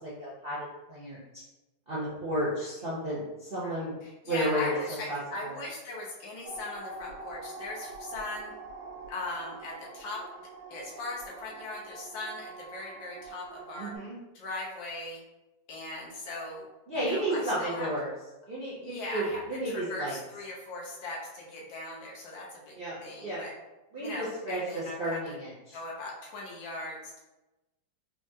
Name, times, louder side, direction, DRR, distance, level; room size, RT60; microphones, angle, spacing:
voice 1, 0.0-1.4 1.9-3.9 4.2-4.8 5.1-5.5 13.8-14.2 16.9-18.1 18.5-20.1 22.7-23.0 23.2-23.4 23.9-25.8, right 1 dB, 60° right, -8 dB, 0.6 m, -32 dB
voice 2, 3.6-8.5 9.1-10.3 10.7-13.9 14.3-15.2 15.7-16.7 16.9-17.9 18.8-23.5 24.0-25.4 25.7-27.2, left 2 dB, 80° left, -3 dB, 1.6 m, -39 dB
sound 1, 6.4-14.0, right 3 dB, 90° right, 1.3 m, -45 dB
4.8 x 2.3 x 2.7 m, 1.0 s
omnidirectional pair, 2.0 m